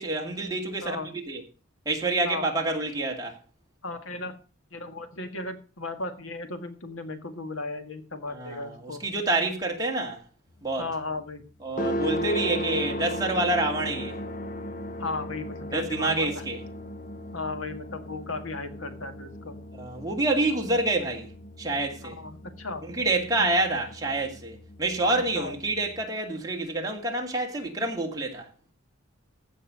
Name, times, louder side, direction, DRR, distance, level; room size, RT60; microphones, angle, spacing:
voice 1, 0.0-1.0 1.3-1.4 1.9-3.4 8.3-10.2 10.6-10.9 11.6-14.2 15.7-16.6 19.7-21.3 21.6-22.2 22.8-28.5, right 2 dB, 20° right, 2.4 m, -27 dB
voice 2, 3.8-4.3 4.7-9.0 10.8-11.4 15.0-16.4 17.3-19.6 22.0-22.8 25.3-25.6, left 3 dB, 80° left, 1.8 m, -35 dB
sound 1, 11.8-26.0, equal, 40° left, 1.0 m, -36 dB
15.0 x 5.5 x 6.4 m
head